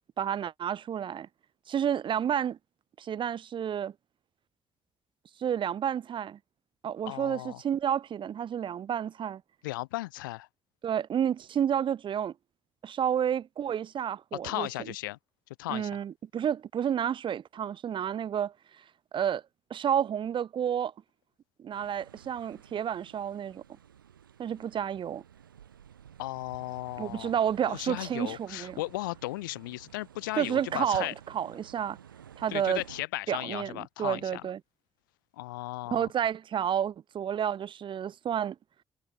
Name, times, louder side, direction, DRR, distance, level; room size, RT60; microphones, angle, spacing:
voice 1, 0.2-1.3 1.7-2.6 3.0-3.9 5.4-6.4 6.8-9.4 10.8-12.3 12.8-14.7 15.7-18.5 19.1-19.4 19.7-20.9 21.6-23.6 24.4-25.2 27.0-28.8 30.4-32.0 32.4-32.8 33.3-34.6 35.9-38.5, right 9 dB, 50° right, 1.7 m, -30 dB
voice 2, 7.1-7.6 9.6-10.5 14.3-15.2 15.6-16.0 26.2-27.3 27.7-31.1 32.5-34.5 35.3-36.1, left 19 dB, 75° left, 0.8 m, -36 dB
sound 1, 21.7-33.0, right 9 dB, 80° right, 4.5 m, -53 dB
figure-of-eight pair, 40°, 11 cm